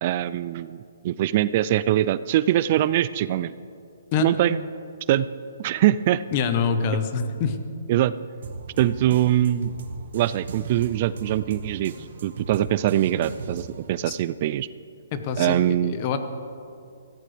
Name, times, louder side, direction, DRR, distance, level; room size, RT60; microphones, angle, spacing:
voice 1, 0.0-3.5 4.2-4.6 5.1-5.3 5.6-6.2 7.9-8.1 8.8-9.7 10.1-11.9 12.2-14.7 15.4-15.9, right 13 dB, 40° right, 16 dB, 0.3 m, -22 dB
voice 2, 6.3-7.6 14.1-14.2 15.1-16.2, left 6 dB, 35° left, 8 dB, 1.1 m, -25 dB
sound 1, 8.4-13.9, right 3 dB, 65° right, 1.5 m, -37 dB
17.5 x 15.0 x 3.4 m, 2.4 s
hypercardioid pair, 150°, 0 cm